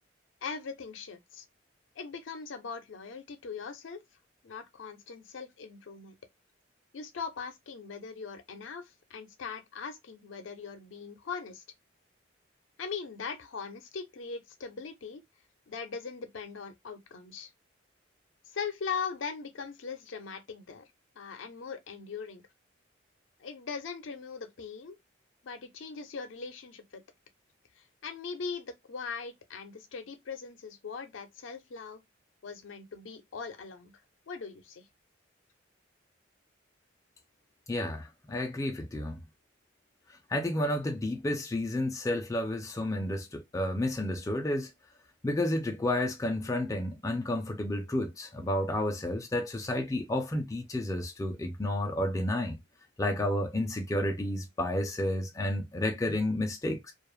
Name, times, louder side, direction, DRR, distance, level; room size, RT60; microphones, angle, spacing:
voice 1, 0.4-1.4 2.0-4.0 4.4-6.2 6.9-8.8 9.1-11.6 12.8-15.2 15.7-17.5 18.5-20.9 21.2-22.4 23.4-25.0 25.4-27.0 27.8-32.0 32.4-33.9 34.3-34.9, left 5 dB, 75° left, 0.5 m, -40 dB
voice 2, 37.7-39.2 40.3-44.7 45.2-52.6 53.0-56.9, left 1 dB, 15° left, 0.3 m, -31 dB
2.3 x 2.0 x 3.0 m
head